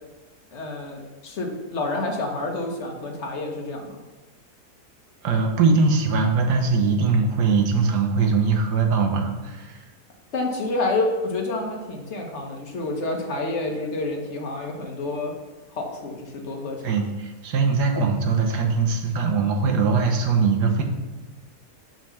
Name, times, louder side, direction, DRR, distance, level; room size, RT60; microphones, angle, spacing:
voice 1, 0.5-3.9 10.3-15.3 15.7-16.9, left 2 dB, 45° left, 1 dB, 1.4 m, -28 dB
voice 2, 5.2-9.8 16.8-20.8, right 4 dB, 85° right, 3 dB, 1.6 m, -21 dB
5.9 x 5.3 x 5.7 m, 1.2 s
omnidirectional pair, 1.7 m